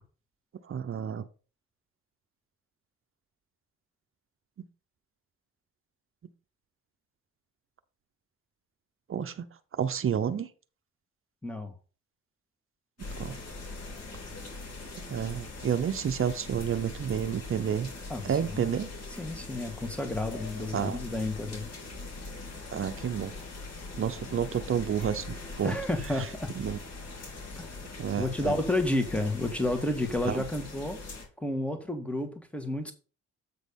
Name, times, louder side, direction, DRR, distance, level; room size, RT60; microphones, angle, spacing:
voice 1, 0.7-1.2 9.1-9.5 9.7-10.5 13.2-13.4 15.1-17.9 18.2-18.9 20.7-21.0 22.7-23.4 24.0-25.8 26.2-26.3 26.6-26.8 28.0-28.5 30.3-30.4, right 8 dB, 45° right, 0.8 m, -30 dB
voice 2, 11.4-11.7 18.1-18.7 19.2-21.7 25.6-26.5 27.6-27.7 28.2-31.0 31.4-32.9, left 1 dB, 5° left, 1.8 m, -31 dB
sound 1, 13.0-31.2, left 3 dB, 55° left, 3.5 m, -42 dB
8.4 x 4.1 x 5.3 m
cardioid pair, 90°, 30 cm